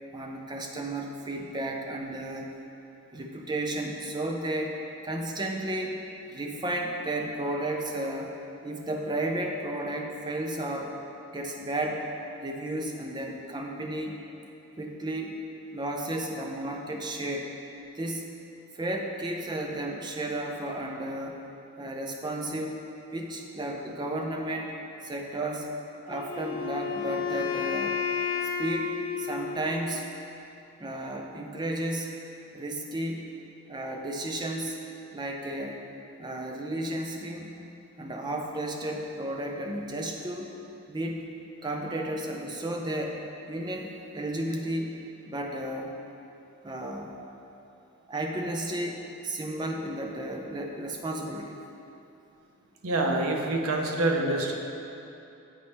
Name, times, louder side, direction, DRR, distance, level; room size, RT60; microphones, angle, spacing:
voice 1, 0.1-2.5 3.1-4.8 5.0-6.0 6.3-8.4 8.6-10.9 11.3-12.1 12.4-14.2 14.8-15.4 15.7-17.5 17.9-18.3 18.7-21.4 21.8-22.8 23.1-24.7 25.0-25.7 26.1-28.0 28.6-30.0 30.8-32.1 32.5-33.2 33.7-34.8 35.1-35.8 36.2-37.5 38.0-40.5 40.9-41.3 41.6-44.9 45.3-46.0 46.6-47.1 48.1-51.6, right 1 dB, 20° right, 1 dB, 0.4 m, -33 dB
Wind instrument woodwind instrument, 26.1-30.1, left 6 dB, 70° left, 0.4 m, -32 dB
voice 2, 52.8-54.5, right 2 dB, 85° right, 1 dB, 0.7 m, -26 dB
8.2 x 4.2 x 3.4 m, 2.8 s
head